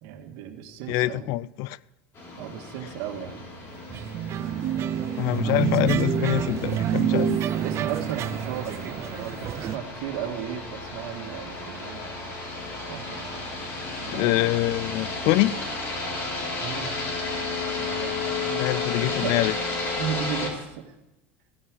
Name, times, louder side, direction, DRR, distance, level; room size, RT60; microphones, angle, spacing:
voice 1, 0.0-1.3 2.4-3.4 7.5-12.2 12.9-13.4 14.0-14.4 16.6-16.9 17.8-19.4 20.0-20.9, right 9 dB, 70° right, 1.9 m, -35 dB
voice 2, 0.9-1.8 5.2-7.4 14.1-15.6 18.6-19.5, left 17 dB, 65° left, 0.4 m, -25 dB
sound 1, 2.1-20.5, left 3 dB, 40° left, 4.0 m, -33 dB
sound 2, 3.9-9.8, right 10 dB, 45° right, 0.5 m, -27 dB
16.0 x 5.7 x 9.6 m
supercardioid pair, 110°, 7 cm